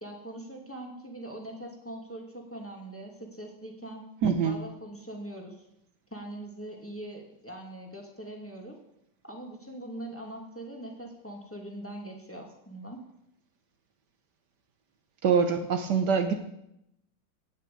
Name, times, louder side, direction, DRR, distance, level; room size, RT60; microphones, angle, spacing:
voice 1, 0.0-4.0 4.4-5.6 6.1-8.8 9.2-13.0, right 1 dB, 5° left, 1 dB, 2.4 m, -42 dB
voice 2, 4.2-4.6 15.2-16.3, right 6 dB, 65° right, 8 dB, 1.4 m, -24 dB
17.0 x 6.5 x 8.4 m, 0.80 s
omnidirectional pair, 2.0 m